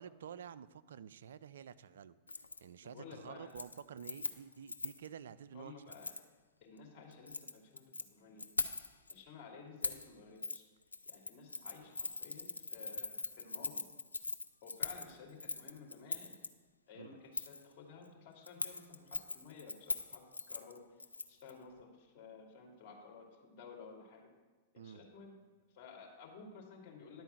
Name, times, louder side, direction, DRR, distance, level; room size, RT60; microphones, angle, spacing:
voice 1, 0.0-2.1 2.6-5.7 16.9-17.2 24.8-25.0, right 8 dB, 70° right, 15 dB, 0.4 m, -50 dB
Keys jangling, 2.3-2.6 2.9-3.2 3.5-5.1 5.9-6.2 7.1-8.0 8.4-9.1 9.8-10.1 10.4-10.6 10.9-16.5 17.3-17.6 18.5-21.5 21.8-21.9, left 3 dB, 90° left, 0.4 m, -41 dB
voice 2, 2.8-3.5 5.5-6.1 6.6-7.8 8.1-8.5 9.1-10.6 11.1-13.8 14.6-16.3 16.9-20.8 21.3-24.3 24.8-25.3 25.7-27.2, left 5 dB, 45° left, 0 dB, 2.8 m, -54 dB
10.5 x 4.6 x 7.8 m, 1.3 s
figure-of-eight pair, 100°, 0 cm